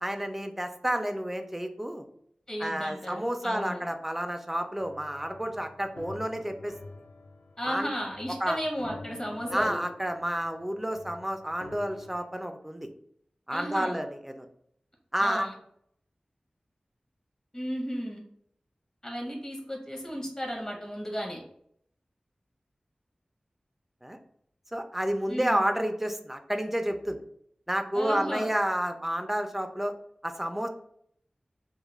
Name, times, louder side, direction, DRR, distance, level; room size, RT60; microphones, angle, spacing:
voice 1, 0.0-2.1 2.6-6.7 7.7-7.9 8.4-8.6 9.5-12.9 13.5-14.5 15.1-15.5 24.0-24.2 24.7-27.2 27.7-29.9 30.2-30.7, equal, 10° right, 6 dB, 0.3 m, -30 dB
voice 2, 2.5-3.8 7.6-9.8 13.5-14.0 15.2-15.5 17.5-18.2 19.0-21.4 25.3-25.6 27.9-28.5, equal, 30° left, 0 dB, 0.7 m, -34 dB
sound 1, 4.8-12.2, left 3 dB, 80° left, 0.3 m, -48 dB
2.3 x 2.1 x 3.0 m, 0.69 s
wide cardioid pair, 55°, 2 cm